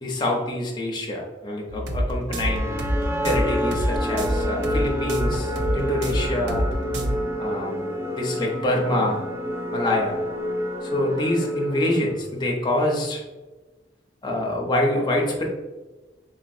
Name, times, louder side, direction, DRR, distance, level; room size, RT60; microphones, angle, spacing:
voice 1, 0.0-2.7 3.2-6.7 7.4-7.9 8.2-9.2 9.7-10.2 10.8-13.2 14.2-15.4, left 1 dB, 25° left, -1 dB, 0.7 m, -25 dB
sound 1, 1.7-7.2, equal, 75° right, 0.5 m, -27 dB
sound 2, 2.3-12.5, equal, 15° right, 0.3 m, -29 dB
4.0 x 2.9 x 2.5 m, 1.2 s
head